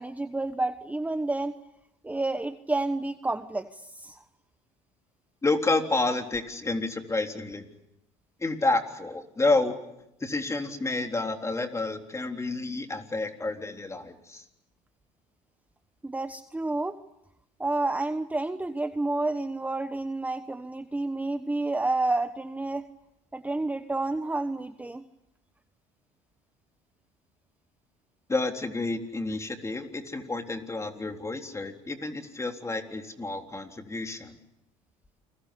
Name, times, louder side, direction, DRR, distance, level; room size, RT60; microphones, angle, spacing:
voice 1, 0.0-1.6 2.0-4.2 16.0-17.0 17.6-22.9 23.3-25.0, right 2 dB, 10° right, 10 dB, 1.2 m, -30 dB
voice 2, 5.4-7.7 8.4-9.8 10.2-14.4 28.3-34.4, left 2 dB, 20° left, 5 dB, 3.7 m, -29 dB
29.0 x 21.5 x 8.5 m, 0.85 s
hypercardioid pair, 80°, 16 cm